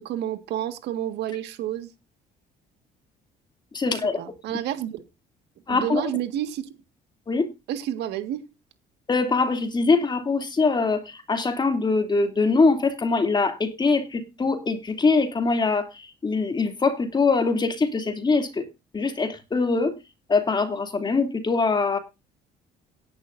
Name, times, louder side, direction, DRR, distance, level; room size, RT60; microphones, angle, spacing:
voice 1, 0.0-1.9 3.9-5.0 5.7-6.7 7.7-8.4, right 11 dB, 80° right, 1.8 m, -30 dB
voice 2, 3.7-4.2 5.7-6.0 7.3-7.5 9.1-18.7 18.9-19.9 20.3-22.0, left 4 dB, 25° left, 2.9 m, -23 dB
17.0 x 11.0 x 2.7 m
cardioid pair, 110°, 17 cm